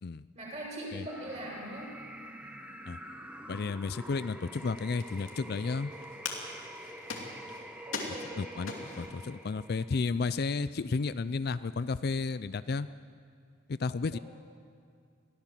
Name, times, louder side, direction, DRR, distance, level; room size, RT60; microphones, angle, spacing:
voice 1, 0.3-1.9 7.8-8.4 14.1-14.2, right 1 dB, 35° right, -3 dB, 6.6 m, -41 dB
sound 1, 1.0-10.1, right 1 dB, 5° right, 1.0 m, -46 dB
voice 2, 3.5-5.9 8.4-12.9 13.7-14.2, left 4 dB, 50° left, 14 dB, 0.4 m, -32 dB
sound 2, 4.5-9.2 9.9-10.0 10.2-10.7, left 4 dB, 75° left, 2.8 m, -42 dB
23.0 x 16.0 x 7.5 m, 2.3 s
head